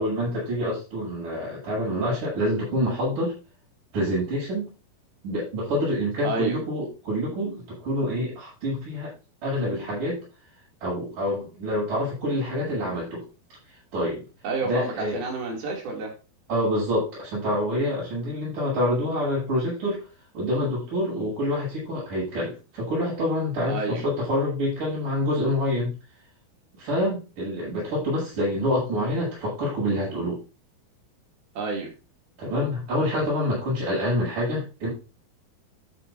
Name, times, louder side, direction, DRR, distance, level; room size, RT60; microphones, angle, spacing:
voice 1, 0.0-3.3 3.9-4.7 5.2-9.1 9.4-10.2 10.8-13.2 13.9-14.2 14.6-15.2 16.5-20.0 20.3-25.9 26.8-30.4 32.4-34.9, left 1 dB, 60° right, -9 dB, 8.7 m, -27 dB
voice 2, 6.2-6.6 14.4-16.1 23.7-24.0 31.6-31.9, right 3 dB, 90° right, 0 dB, 4.8 m, -29 dB
13.0 x 9.1 x 2.7 m, 0.32 s
omnidirectional pair, 4.2 m